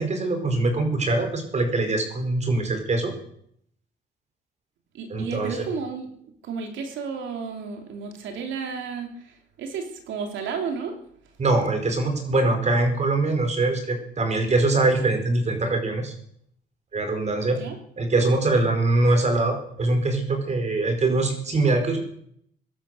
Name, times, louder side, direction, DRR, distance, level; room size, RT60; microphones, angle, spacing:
voice 1, 0.0-3.1 5.1-5.6 11.4-16.1 16.9-17.6 18.0-22.0, right 2 dB, 35° right, 5 dB, 4.8 m, -23 dB
voice 2, 4.9-6.1 6.4-11.0 17.5-17.8, right 5 dB, 85° right, 3 dB, 3.2 m, -32 dB
17.0 x 12.0 x 6.7 m, 0.66 s
cardioid pair, 105°, 19 cm